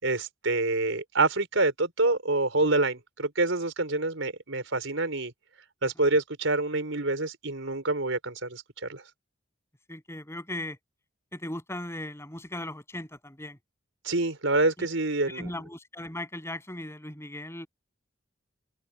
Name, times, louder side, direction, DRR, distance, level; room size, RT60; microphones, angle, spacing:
voice 1, 0.0-5.3 5.8-9.0 14.0-15.5, right 2 dB, 80° right, 4.9 m, -27 dB
voice 2, 9.9-10.8 11.3-13.6 14.8-14.9 15.2-17.7, left 1 dB, 15° left, 7.7 m, -38 dB
head